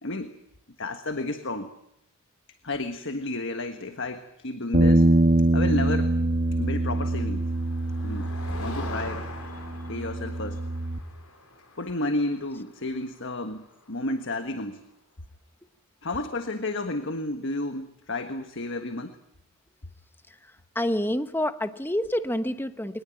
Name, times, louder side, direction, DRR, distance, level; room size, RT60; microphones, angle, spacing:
voice 1, 0.0-0.4 0.8-1.7 2.6-5.1 5.5-6.2 6.6-7.4 8.0-9.3 9.9-10.6 11.8-14.8 16.0-19.2, left 2 dB, 55° left, 8 dB, 1.5 m, -32 dB
sound 1, 4.7-11.0, right 2 dB, 40° right, 1.7 m, -24 dB
Motor vehicle (road), 6.7-14.5, left 2 dB, 70° left, 5.6 m, -44 dB
voice 2, 20.7-23.0, left 1 dB, 10° left, 11 dB, 1.0 m, -27 dB
22.5 x 20.0 x 9.1 m, 0.80 s
head